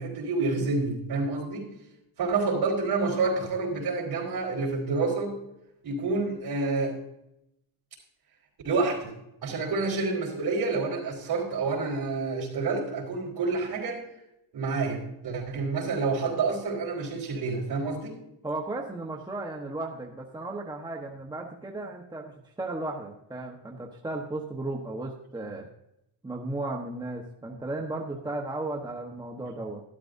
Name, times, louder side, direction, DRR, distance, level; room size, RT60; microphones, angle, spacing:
voice 1, 0.0-1.7 2.2-5.4 5.8-7.0 8.6-9.1 9.4-14.0 14.5-18.1, right 3 dB, 50° right, -1 dB, 4.2 m, -28 dB
voice 2, 18.4-22.3 22.6-25.7 26.2-29.8, right 2 dB, 10° right, 0 dB, 1.1 m, -35 dB
13.0 x 12.0 x 2.6 m, 0.82 s
cardioid pair, 140°, 48 cm